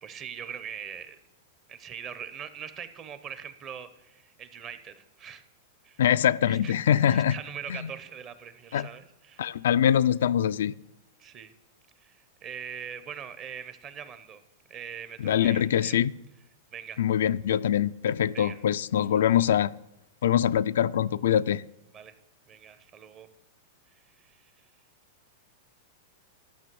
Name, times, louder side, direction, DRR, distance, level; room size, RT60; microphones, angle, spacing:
voice 1, 0.0-1.2 1.7-5.4 5.8-6.0 6.4-9.5 11.2-11.5 12.0-14.4 14.7-16.0 16.7-17.0 18.3-18.6 19.1-19.4 21.9-22.1 22.5-23.3 23.9-24.5, right 8 dB, 30° right, 0.9 m, -42 dB
voice 2, 6.0-7.4 7.7-7.9 8.7-8.9 9.4-10.7 15.2-16.1 17.0-19.7 20.2-21.6, left 10 dB, 80° left, 0.3 m, -23 dB
12.0 x 6.0 x 7.8 m
hypercardioid pair, 135°, 0 cm